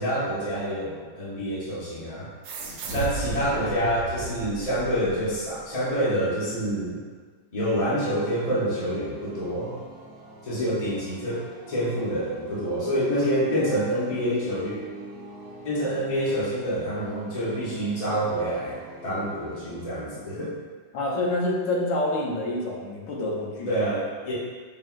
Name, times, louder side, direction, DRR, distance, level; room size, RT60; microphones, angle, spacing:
voice 1, 0.0-2.3 2.9-7.0 7.5-9.8 10.4-14.8 15.6-20.6 23.7-24.3, equal, 30° left, -8 dB, 0.8 m, -27 dB
sound 1, 2.4-5.5, right 3 dB, 85° right, 1.3 m, -35 dB
sound 2, 8.0-19.8, right 1 dB, 50° right, 0.8 m, -44 dB
voice 2, 20.9-23.7, left 1 dB, 80° left, -3 dB, 1.3 m, -27 dB
5.0 x 2.9 x 2.4 m, 1.5 s
omnidirectional pair, 2.0 m